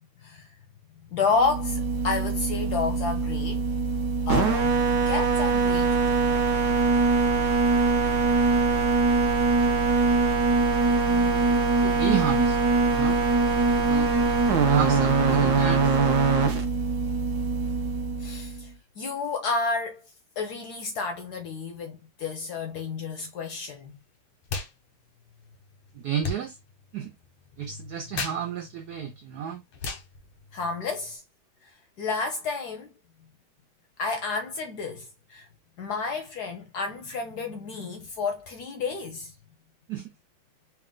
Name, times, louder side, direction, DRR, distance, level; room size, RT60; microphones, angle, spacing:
voice 1, 1.1-3.6 4.3-6.4 18.2-20.0 20.4-24.0 30.5-31.2 32.0-32.9 34.0-35.5 35.8-39.3, left 4 dB, 65° left, 1.0 m, -31 dB
sound 1, 1.4-18.6, right 4 dB, 55° right, 1.3 m, -23 dB
voice 2, 11.1-12.6 12.9-13.2 13.9-14.1 14.5-16.0 25.9-26.6 26.9-27.1 27.6-29.6 39.9-40.1, right 9 dB, 85° right, 0.8 m, -31 dB
sound 2, 24.4-24.7 25.0-31.2, left 4 dB, 90° left, 1.9 m, -38 dB
4.3 x 2.3 x 3.7 m
omnidirectional pair, 2.3 m